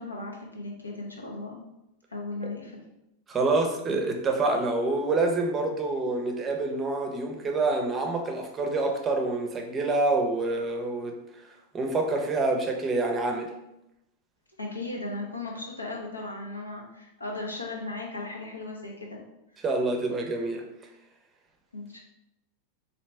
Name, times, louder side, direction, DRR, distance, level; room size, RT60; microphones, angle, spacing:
voice 1, 0.0-1.6 2.1-2.8 14.6-19.2 21.7-22.0, left 2 dB, 80° left, -1 dB, 0.8 m, -36 dB
voice 2, 3.3-11.2 11.7-13.5 19.6-20.6, right 2 dB, 20° right, 2 dB, 0.6 m, -27 dB
4.1 x 2.7 x 3.3 m, 0.88 s
figure-of-eight pair, 90°, 0 cm